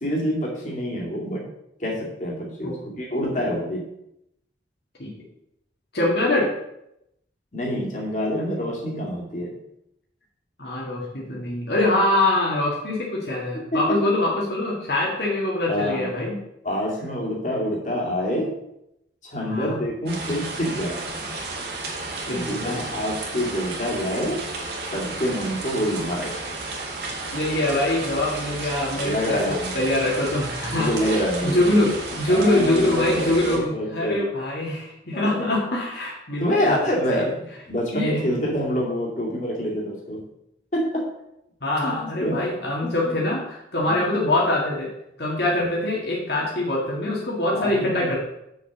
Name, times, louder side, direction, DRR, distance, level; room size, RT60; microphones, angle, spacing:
voice 1, 0.0-1.5 1.8-3.9 7.5-9.6 13.5-14.0 15.7-16.1 16.6-18.5 19.2-21.1 22.3-24.4 24.9-26.4 28.9-29.8 30.7-31.7 32.3-34.3 35.1-35.6 36.4-40.2 40.7-41.1 41.8-41.9 42.2-42.4 42.8-43.1 43.8-44.1 47.5-48.1, equal, 40° left, -3 dB, 2.3 m, -27 dB
voice 2, 5.9-6.5 10.6-16.3 19.4-19.8 22.3-22.8 27.3-36.8 37.1-37.3 37.9-38.2 41.6-44.9 45.2-48.2, left 1 dB, 60° left, -4 dB, 2.0 m, -24 dB
sound 1, 20.1-33.6, right 3 dB, 65° right, 2.2 m, -33 dB
6.4 x 5.4 x 6.9 m, 0.82 s
head